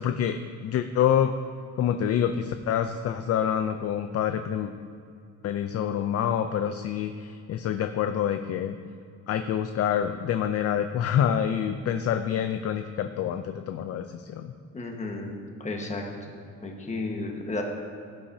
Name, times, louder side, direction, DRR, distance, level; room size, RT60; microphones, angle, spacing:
voice 1, 0.0-1.3 1.8-4.7 5.4-8.8 9.3-14.5, left 9 dB, 45° left, 8 dB, 0.5 m, -27 dB
voice 2, 14.7-16.0 16.6-17.6, left 2 dB, 20° left, 1 dB, 1.4 m, -33 dB
16.5 x 8.6 x 2.8 m, 2.4 s
cardioid pair, 140°, 34 cm